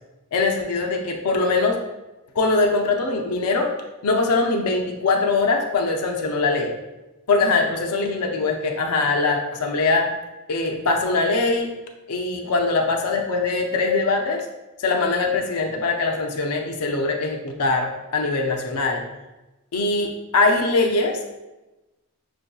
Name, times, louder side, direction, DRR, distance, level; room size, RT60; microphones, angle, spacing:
voice 1, 0.3-1.8 2.4-3.7 4.0-6.7 7.3-10.1 10.5-11.7 12.1-14.5 14.8-19.0 19.7-21.2, left 3 dB, 80° left, 3 dB, 0.5 m, -22 dB
6.0 x 2.5 x 2.3 m, 1.1 s
head